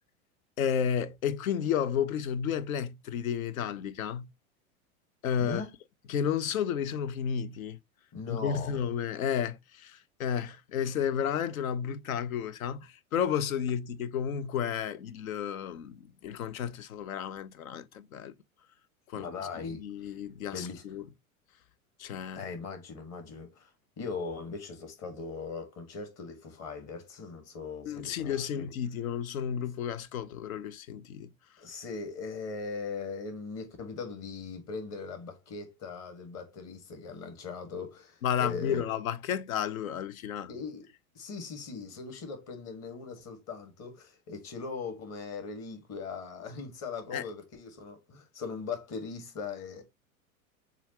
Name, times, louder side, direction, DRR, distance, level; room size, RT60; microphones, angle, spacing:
voice 1, 0.6-4.3 5.2-5.6 6.1-7.8 8.3-18.3 19.1-19.3 19.6-21.0 22.0-22.5 27.9-31.3 38.2-40.5 47.1-47.2, left 8 dB, 70° left, 0.7 m, -32 dB
voice 2, 5.4-5.7 8.1-8.8 19.2-20.2 20.5-20.8 22.4-23.7 24.0-28.7 31.6-38.8 40.5-40.9 41.2-49.8, left 4 dB, 35° left, 1.7 m, -40 dB
6.9 x 2.5 x 2.9 m
figure-of-eight pair, 90°, 43 cm